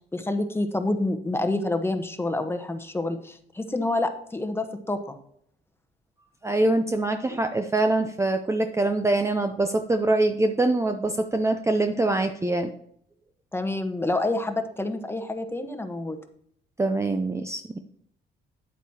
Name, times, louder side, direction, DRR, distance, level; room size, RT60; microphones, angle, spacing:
voice 1, 0.1-5.2 13.5-16.2, left 2 dB, 10° left, 7 dB, 1.1 m, -28 dB
voice 2, 6.4-12.7 16.8-17.8, right 2 dB, 15° right, 6 dB, 0.6 m, -24 dB
9.2 x 8.3 x 2.9 m, 0.67 s
cardioid pair, 90°, 20 cm